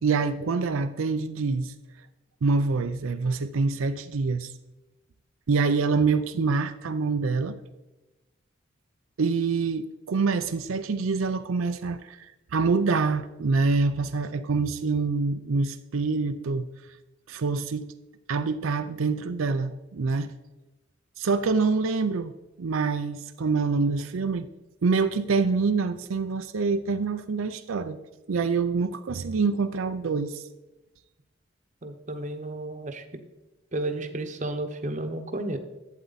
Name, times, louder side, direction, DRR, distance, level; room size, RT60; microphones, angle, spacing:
voice 1, 0.0-1.7 2.4-4.5 5.5-7.6 9.2-16.7 17.3-17.8 18.3-20.3 21.2-22.3 22.6-24.5 24.8-28.0 28.3-30.4, right 4 dB, 85° right, 10 dB, 0.5 m, -26 dB
voice 2, 31.8-33.0 33.7-35.6, right 2 dB, 35° right, 7 dB, 0.9 m, -32 dB
11.5 x 8.0 x 4.0 m, 1.1 s
head